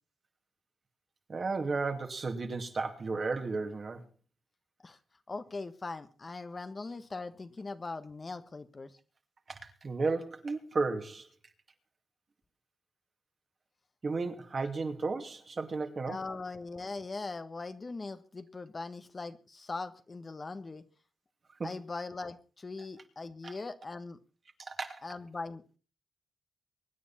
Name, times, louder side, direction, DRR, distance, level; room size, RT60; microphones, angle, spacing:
voice 1, 1.3-4.0 9.5-11.3 14.0-16.2 21.6-21.7 23.4-23.5 24.6-25.0, right 3 dB, 45° right, 2.5 m, -34 dB
voice 2, 5.3-8.9 16.1-20.8 21.6-24.2 25.0-25.8, left 3 dB, 35° left, 1.4 m, -40 dB
24.0 x 9.5 x 4.3 m
cardioid pair, 70°, 0 cm